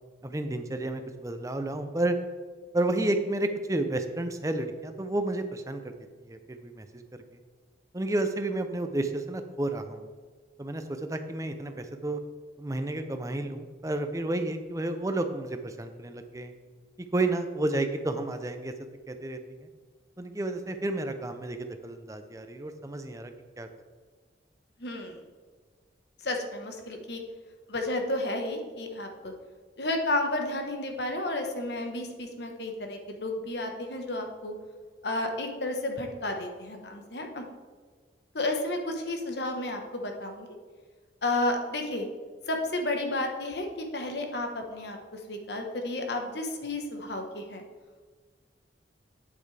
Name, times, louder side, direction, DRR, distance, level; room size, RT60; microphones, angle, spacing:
voice 1, 0.2-2.2 2.7-5.9 6.2-7.0 7.9-10.1 10.6-12.2 12.6-16.5 17.0-18.7 19.1-19.7 20.2-23.7, right 2 dB, 20° right, 7 dB, 0.5 m, -31 dB
voice 2, 24.8-25.2 26.2-27.2 27.7-29.3 29.8-34.5 35.0-37.4 38.3-40.5 41.2-42.1 42.5-47.6, left 2 dB, 75° left, 3 dB, 1.2 m, -32 dB
8.9 x 8.4 x 3.3 m, 1.5 s
head